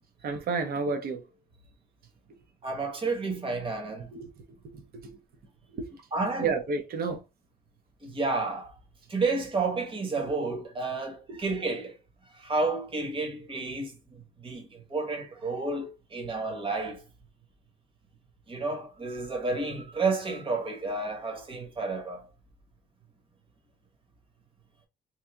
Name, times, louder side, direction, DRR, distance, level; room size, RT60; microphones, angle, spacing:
voice 1, 0.2-1.2 4.1-4.3 4.7-5.1 5.7-5.9 6.4-7.2 11.3-11.4, right 4 dB, 65° right, 0.8 m, -30 dB
voice 2, 2.6-4.1 6.1-6.5 8.0-8.7 9.1-11.9 12.3-14.0 14.4-17.0 18.5-22.3, right 3 dB, 30° right, 1.1 m, -31 dB
3.2 x 2.7 x 3.4 m
cardioid pair, 155°, 17 cm